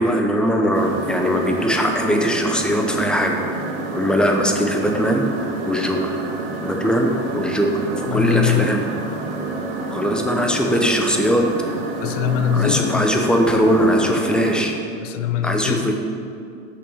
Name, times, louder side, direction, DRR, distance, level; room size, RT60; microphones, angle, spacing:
voice 1, 0.0-6.2 6.6-8.8 9.9-11.4 12.5-14.7 15.4-15.9, equal, ahead, 2 dB, 0.7 m, -20 dB
sound 1, 0.7-14.6, right 3 dB, 50° right, 1.3 m, -28 dB
voice 2, 8.1-8.7 12.0-13.1 15.0-15.9, left 11 dB, 80° left, 10 dB, 0.6 m, -22 dB
6.3 x 6.0 x 6.3 m, 2.4 s
supercardioid pair, 125°, 37 cm